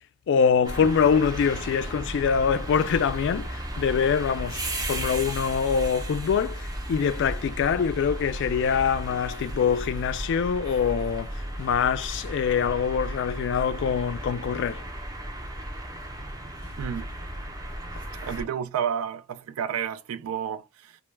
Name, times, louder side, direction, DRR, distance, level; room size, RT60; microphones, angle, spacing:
voice 1, 0.3-14.8, left 6 dB, 60° left, 0.3 m, -24 dB
sound 1, 0.6-18.4, right 1 dB, 20° right, 0.5 m, -35 dB
voice 2, 16.8-17.1 18.2-21.0, right 8 dB, 85° right, 0.3 m, -31 dB
2.1 x 2.0 x 3.1 m
head